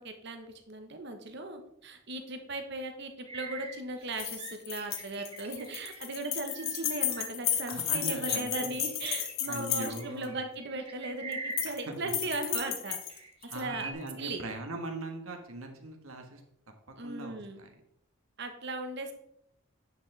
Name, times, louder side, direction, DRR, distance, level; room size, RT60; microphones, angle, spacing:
voice 1, 0.0-13.0 13.5-13.9 14.2-14.4 17.0-17.6 18.4-19.1, right 2 dB, 50° right, 6 dB, 1.1 m, -38 dB
sound 1, 3.3-8.4 8.8-12.6 12.8-13.9, right 3 dB, 25° right, 1.1 m, -44 dB
sound 2, 4.1-10.2 11.3-11.8 12.1-13.6, left 10 dB, 70° left, 1.1 m, -33 dB
voice 2, 7.7-8.8 9.5-10.4 11.7-12.1 13.5-16.4 17.0-17.7, right 2 dB, 75° right, 4 dB, 1.5 m, -40 dB
9.8 x 6.0 x 3.4 m, 0.75 s
head